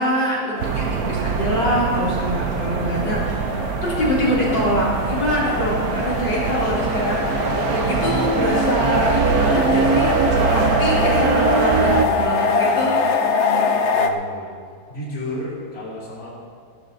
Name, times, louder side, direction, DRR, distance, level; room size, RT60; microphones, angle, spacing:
voice 1, 0.0-3.2 3.8-12.9 13.3-13.4, equal, 70° left, -7 dB, 4.3 m, -24 dB
sound 1, 0.6-14.1, left 5 dB, 50° left, 0.9 m, -24 dB
sound 2, 0.6-12.1, right 6 dB, 60° right, 1.1 m, -23 dB
voice 2, 2.7-3.3 4.0-4.4 12.1-13.1 13.7-14.6 14.9-16.3, left 1 dB, 35° left, -7 dB, 3.5 m, -34 dB
16.0 x 13.5 x 4.0 m, 2.1 s
omnidirectional pair, 2.0 m